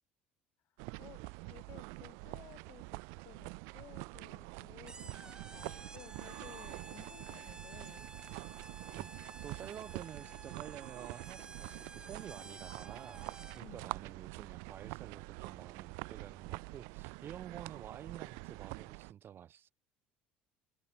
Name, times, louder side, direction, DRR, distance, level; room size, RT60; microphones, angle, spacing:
sound 1, 0.8-19.1, right 39 dB, 70° right, 1.0 m, -46 dB
voice 1, 1.0-8.0 13.6-13.9, left 14 dB, 55° left, 3.5 m, -57 dB
sound 2, 4.9-13.8, right 2 dB, 15° right, 7.3 m, -52 dB
voice 2, 8.9-19.7, right 9 dB, 45° right, 2.6 m, -50 dB
hypercardioid pair, 65°, 5 cm